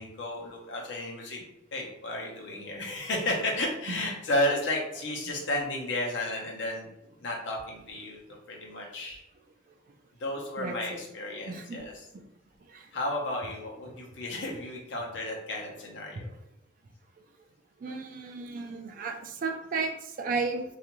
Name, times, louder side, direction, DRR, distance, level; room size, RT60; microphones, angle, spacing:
voice 1, 0.0-1.4 1.7-6.9 7.2-9.2 10.2-12.1 12.9-16.3, left 1 dB, 65° left, -1 dB, 0.7 m, -33 dB
voice 2, 10.6-11.0 11.5-11.8 12.7-12.9 17.8-20.6, right 4 dB, 45° right, 4 dB, 0.3 m, -34 dB
2.5 x 2.3 x 2.9 m, 0.81 s
head